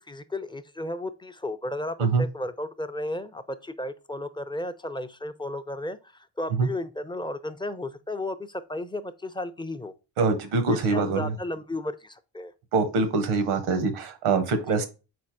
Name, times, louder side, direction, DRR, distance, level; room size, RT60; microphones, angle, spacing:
voice 1, 0.1-9.9 10.9-12.5 14.7-14.9, left 1 dB, 10° left, 0.3 m, -34 dB
voice 2, 10.2-11.3 12.7-14.9, right 4 dB, 90° right, 0.8 m, -24 dB
4.3 x 4.0 x 2.5 m
supercardioid pair, 50°, 47 cm